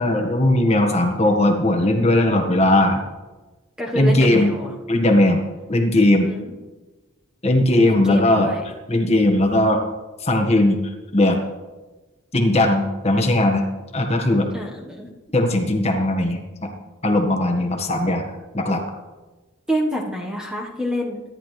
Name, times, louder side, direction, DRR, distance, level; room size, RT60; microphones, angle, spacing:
voice 1, 0.0-3.0 3.9-4.5 4.9-5.4 5.7-6.3 7.4-8.5 8.9-9.8 10.2-10.8 11.1-11.4 12.3-13.6 13.9-14.5 15.3-16.7 17.0-18.2 18.5-18.8, left 1 dB, 30° left, 3 dB, 1.5 m, -18 dB
voice 2, 3.8-4.7 6.2-6.6 7.8-8.6 14.5-15.1 19.7-21.2, equal, 5° right, -1 dB, 1.3 m, -27 dB
25.0 x 11.0 x 3.3 m, 1.2 s
head